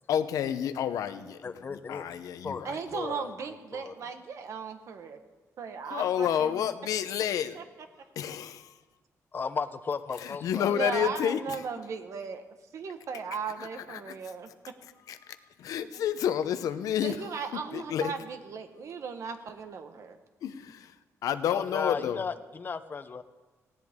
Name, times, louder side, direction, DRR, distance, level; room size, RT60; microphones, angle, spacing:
voice 1, 0.1-2.8 5.9-7.6 8.2-8.7 10.2-11.6 13.6-14.1 15.1-18.1 20.4-20.9 21.2-22.2, left 9 dB, 85° left, 11 dB, 0.8 m, -30 dB
voice 2, 1.4-2.1 2.4-2.7 2.9-4.1 9.3-11.1 21.5-23.2, left 5 dB, 35° left, 11 dB, 0.8 m, -36 dB
voice 3, 2.6-5.2 5.6-6.7 7.5-7.6 8.3-8.4 10.6-12.4 12.7-14.7 15.8-15.9 17.0-20.2, right 5 dB, 60° right, 7 dB, 1.4 m, -37 dB
18.5 x 16.5 x 3.7 m, 1.2 s
cardioid pair, 125°, 6 cm